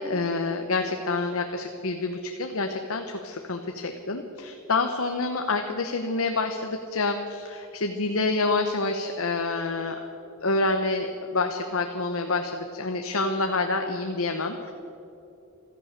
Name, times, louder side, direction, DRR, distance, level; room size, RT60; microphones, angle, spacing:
voice 1, 0.0-10.0 10.4-14.7, left 3 dB, 65° left, 5 dB, 0.9 m, -27 dB
15.0 x 13.5 x 6.7 m, 2.9 s
head